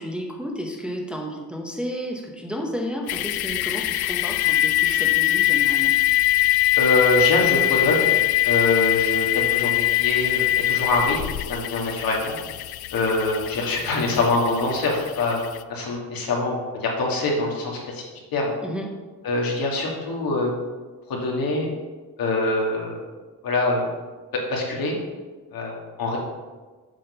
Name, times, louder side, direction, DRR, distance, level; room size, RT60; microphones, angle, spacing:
voice 1, 0.0-5.9 18.6-19.0, equal, 5° right, 0 dB, 0.8 m, -32 dB
sound 1, 3.1-15.6, left 14 dB, 90° left, 0.5 m, -23 dB
voice 2, 6.8-8.1 8.4-12.4 12.9-15.4 15.7-18.0 18.3-18.5 19.2-20.5 21.1-21.7 22.2-23.0 23.4-23.9 24.3-24.9 25.5-26.2, left 2 dB, 70° left, -1 dB, 2.2 m, -24 dB
7.6 x 6.3 x 5.5 m, 1.3 s
wide cardioid pair, 170°, 36 cm